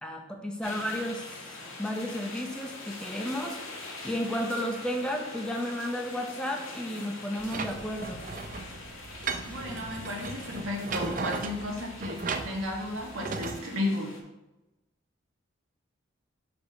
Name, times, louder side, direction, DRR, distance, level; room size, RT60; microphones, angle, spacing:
voice 1, 0.0-8.2, equal, 5° left, 2 dB, 0.7 m, -33 dB
sound 1, 0.6-14.2, left 2 dB, 85° left, 1.8 m, -44 dB
sound 2, 7.4-13.6, right 4 dB, 40° right, 0.5 m, -36 dB
voice 2, 9.4-14.1, left 1 dB, 85° right, -1 dB, 1.7 m, -34 dB
5.2 x 4.9 x 6.3 m, 1.0 s
head